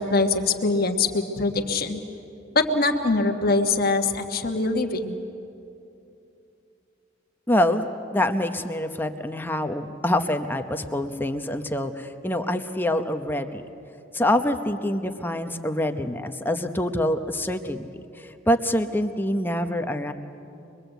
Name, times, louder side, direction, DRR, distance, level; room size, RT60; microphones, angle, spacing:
voice 1, 0.0-2.0 2.5-5.1, left 3 dB, 50° left, 4 dB, 1.3 m, -23 dB
voice 2, 7.5-13.7 14.1-17.9 18.2-20.1, left 1 dB, 10° left, 7 dB, 0.8 m, -25 dB
23.5 x 22.5 x 8.1 m, 2.7 s
head